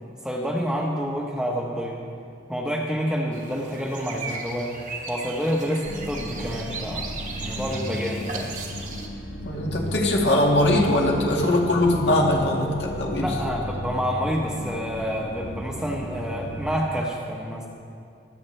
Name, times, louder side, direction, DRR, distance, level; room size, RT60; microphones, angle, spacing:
voice 1, 0.2-2.0 2.5-4.7 5.1-8.5 13.2-17.7, equal, 5° right, -2 dB, 0.9 m, -28 dB
sound 1, 3.3-9.1, right 4 dB, 40° right, 1.1 m, -36 dB
sound 2, 5.8-16.7, equal, 90° left, 1.2 m, -35 dB
voice 2, 9.4-13.3, left 1 dB, 70° left, -1 dB, 1.8 m, -21 dB
23.0 x 8.0 x 3.3 m, 2.3 s
head